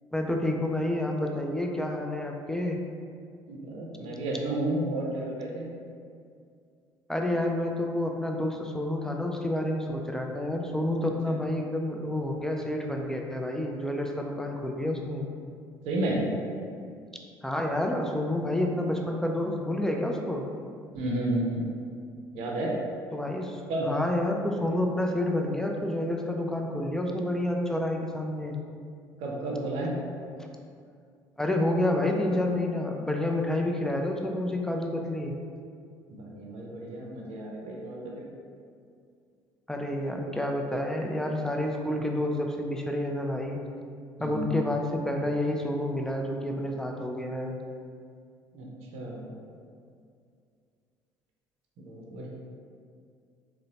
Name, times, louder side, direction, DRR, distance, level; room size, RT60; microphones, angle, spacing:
voice 1, 0.1-2.8 7.1-15.3 17.4-20.5 23.1-28.6 30.4-30.5 31.4-35.3 39.7-43.6 44.2-47.5, left 1 dB, 5° left, 2 dB, 0.3 m, -29 dB
voice 2, 3.5-5.7 15.8-16.2 20.9-21.7 22.3-22.7 23.7-23.9 29.2-29.9 36.1-38.2 44.2-44.5 48.5-48.7 48.9-49.2 51.8-52.3, right 1 dB, 60° right, -2 dB, 0.6 m, -31 dB
3.7 x 2.1 x 2.7 m, 2.3 s
figure-of-eight pair, 55°, 12 cm